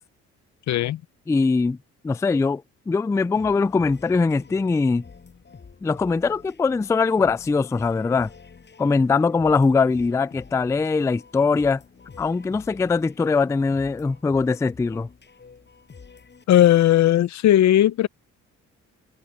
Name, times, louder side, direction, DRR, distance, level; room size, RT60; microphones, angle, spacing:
voice 1, 0.7-1.0 16.5-18.1, left 12 dB, 65° left, 0.8 m, -17 dB
voice 2, 1.3-1.8 2.0-5.0 5.8-8.3 8.8-11.8 12.2-15.1, left 4 dB, 10° left, 0.3 m, -21 dB
sound 1, 3.4-16.4, left 5 dB, 35° left, 6.5 m, -48 dB
cardioid pair, 90°, 30 cm